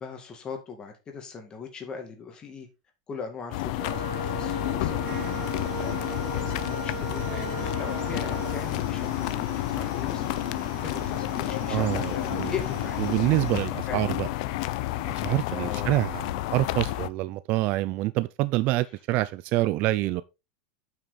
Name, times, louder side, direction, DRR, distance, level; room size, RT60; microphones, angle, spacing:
voice 1, 0.0-2.7 3.1-9.3 9.7-10.2 10.8-13.0 13.9-14.1 15.5-16.0, left 5 dB, 20° left, 2.1 m, -39 dB
sound 1, 3.5-17.1, left 16 dB, 55° left, 0.7 m, -30 dB
Wind instrument woodwind instrument, 3.8-8.7, right 6 dB, 15° right, 1.8 m, -38 dB
sound 2, 5.0-13.7, right 8 dB, 55° right, 2.4 m, -42 dB
voice 2, 11.7-12.5 13.0-14.3 15.0-20.2, right 17 dB, 35° right, 0.4 m, -26 dB
9.0 x 6.0 x 4.0 m
supercardioid pair, 165°, 4 cm